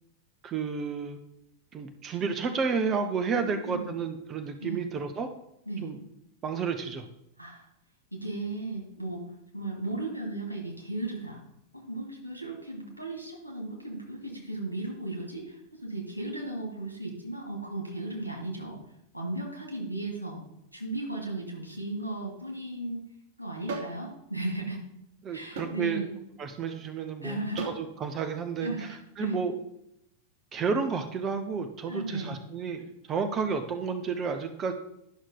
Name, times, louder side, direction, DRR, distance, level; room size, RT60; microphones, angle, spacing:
voice 1, 0.4-1.2 1.7-5.3 5.8-6.0 6.4-7.0 25.2-26.0 26.4-29.5 30.5-32.8 33.1-34.7, right 5 dB, 30° right, 7 dB, 0.8 m, -31 dB
voice 2, 3.4-3.9 4.6-4.9 5.7-5.9 7.4-7.7 8.1-9.3 9.5-11.4 11.7-18.8 19.1-20.4 20.7-23.0 23.4-24.8 25.3-26.1 27.2-27.7 28.6-29.4 31.9-32.4, right 2 dB, 90° right, -1 dB, 2.8 m, -36 dB
sound 1, 23.7-24.0 25.6-25.8 27.6-27.8, right 3 dB, 55° right, 1.5 m, -35 dB
11.5 x 6.3 x 4.0 m, 0.80 s
figure-of-eight pair, 90°, 0 cm